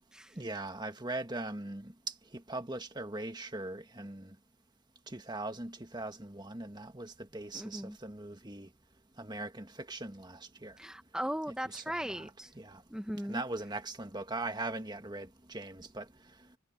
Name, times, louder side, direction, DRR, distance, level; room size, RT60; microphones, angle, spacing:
voice 1, 0.4-1.9 2.5-4.3 5.1-8.7 9.2-10.8 11.5-12.8 13.3-16.1, right 2 dB, 20° right, 1.7 m, -40 dB
voice 2, 7.5-8.0 10.8-12.5 12.9-13.4, equal, 5° right, 1.1 m, -38 dB
head